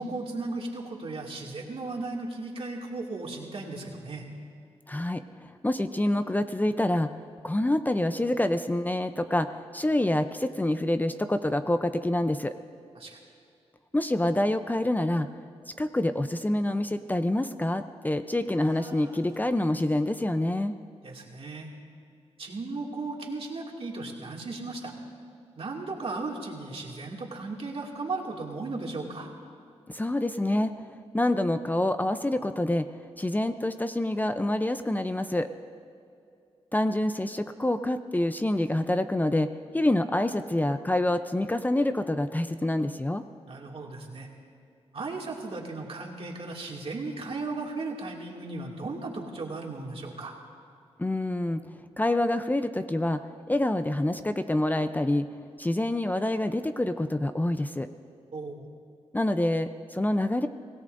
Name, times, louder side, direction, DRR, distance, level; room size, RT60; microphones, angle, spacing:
voice 1, 0.0-4.3 13.0-13.2 21.0-21.7 22.4-24.9 25.6-29.3 43.5-44.3 44.9-50.3 58.3-58.7, right 3 dB, 60° right, -1 dB, 2.4 m, -36 dB
voice 2, 4.9-7.1 7.4-12.5 13.9-15.3 15.8-20.7 29.9-30.7 31.1-32.9 33.2-35.5 36.7-43.2 51.0-51.6 52.0-53.2 53.5-55.3 55.6-57.9 59.1-60.5, left 1 dB, 15° left, 9 dB, 0.6 m, -27 dB
sound 1, 18.5-20.0, right 1 dB, 30° right, 2.2 m, -51 dB
25.0 x 17.0 x 2.6 m, 2.5 s
cardioid pair, 65°, 11 cm